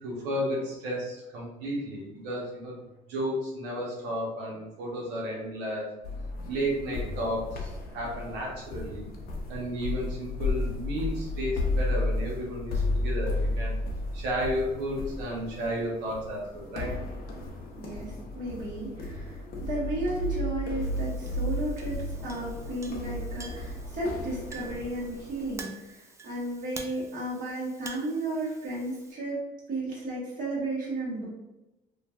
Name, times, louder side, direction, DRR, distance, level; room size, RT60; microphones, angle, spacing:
voice 1, 0.0-2.8 3.1-5.9 6.5-9.1 9.5-13.8 14.1-16.9, equal, 90° right, -3 dB, 0.9 m, -33 dB
sound 1, 6.0-25.6, left 2 dB, 65° left, 0.6 m, -33 dB
voice 2, 17.8-29.4 29.7-31.3, right 1 dB, 50° right, -6 dB, 1.4 m, -34 dB
Chink clink, 20.8-29.1, right 4 dB, 15° right, 0.3 m, -48 dB
3.1 x 2.4 x 2.4 m, 0.98 s
cardioid pair, 110°, 17 cm